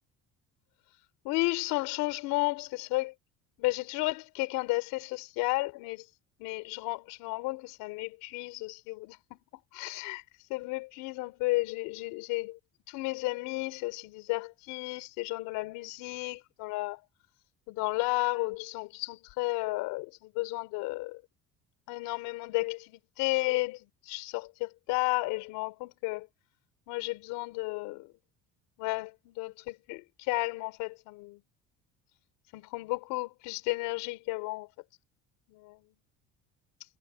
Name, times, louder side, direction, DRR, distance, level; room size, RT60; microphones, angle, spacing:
voice 1, 1.2-3.1 3.6-6.0 6.4-9.4 9.7-10.2 10.5-12.6 12.9-17.0 17.7-21.2 21.9-23.8 24.1-26.3 26.9-28.1 28.8-31.4 32.5-34.7 35.5-35.8, left 22 dB, 85° left, 4.1 m, -33 dB
cardioid pair, 175°, 32 cm